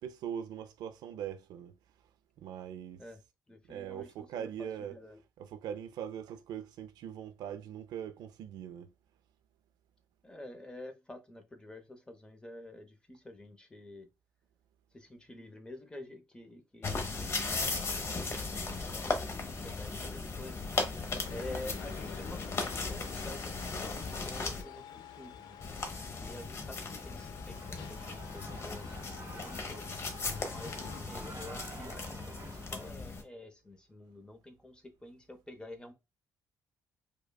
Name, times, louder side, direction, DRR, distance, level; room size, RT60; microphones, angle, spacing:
voice 1, 0.0-1.7 2.4-3.0 3.7-5.0 5.4-8.9 24.3-24.5, right 9 dB, 75° right, 0.4 m, -41 dB
voice 2, 3.5-5.2 10.2-14.1 14.9-20.6 21.3-24.8 25.2-25.6 26.2-29.8 30.3-35.9, left 1 dB, 10° left, 0.7 m, -49 dB
sound 1, 16.8-24.6 25.6-33.2, left 3 dB, 40° left, 0.8 m, -37 dB
sound 2, 21.3-31.0, left 9 dB, 70° left, 0.4 m, -49 dB
Shout / Cheering, 27.5-32.9, right 4 dB, 45° right, 0.7 m, -51 dB
4.9 x 2.2 x 2.2 m
cardioid pair, 85°, 7 cm